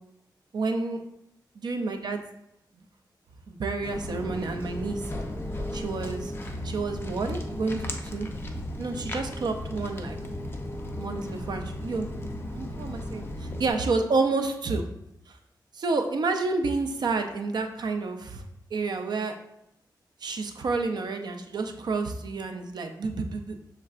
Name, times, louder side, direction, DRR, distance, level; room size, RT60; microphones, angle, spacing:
voice 1, 0.5-1.0 1.6-2.2 3.5-5.1 5.7-6.3 6.6-8.3 8.8-10.2 11.0-12.1 12.5-14.9 15.3-15.4 15.7-18.4 18.7-19.4 20.2-23.6, right 3 dB, 65° right, 6 dB, 0.5 m, -29 dB
Walk footsteps, 3.8-13.7, left 1 dB, 30° left, 0.5 m, -35 dB
6.4 x 3.2 x 2.4 m, 0.82 s
wide cardioid pair, 170°, 8 cm